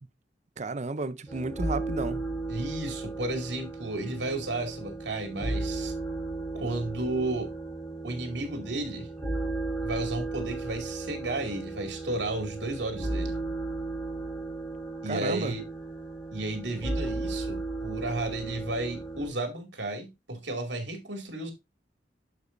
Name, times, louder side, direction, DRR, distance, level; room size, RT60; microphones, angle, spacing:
voice 1, 0.6-2.2 15.1-15.6, right 3 dB, 40° right, 0.6 m, -32 dB
sound 1, 1.3-19.3, right 2 dB, ahead, 3.5 m, -35 dB
voice 2, 2.5-5.9 6.5-7.5 8.0-9.1 9.8-13.3 15.0-15.7 16.3-21.5, right 2 dB, 85° right, 2.4 m, -33 dB
11.5 x 5.1 x 2.6 m
head